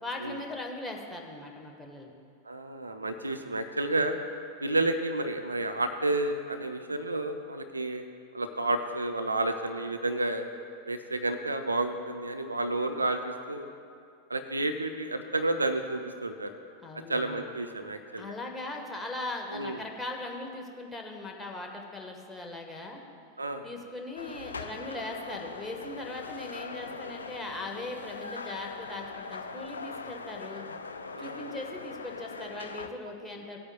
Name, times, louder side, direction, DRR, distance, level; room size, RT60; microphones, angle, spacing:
voice 1, 0.0-2.1 16.8-17.4 18.2-23.0 23.6-30.6 31.2-33.6, left 2 dB, 10° left, 1 dB, 1.3 m, -39 dB
voice 2, 2.5-4.2 4.6-8.1 8.3-10.4 10.9-13.7 14.3-16.5 16.9-18.3 19.5-19.8 23.4-23.7 31.1-31.6, right 2 dB, 80° right, 7 dB, 0.5 m, -31 dB
sound 1, 24.2-32.9, left 4 dB, 75° left, 0.4 m, -41 dB
17.5 x 8.6 x 2.3 m, 2.4 s
figure-of-eight pair, 90°, 0 cm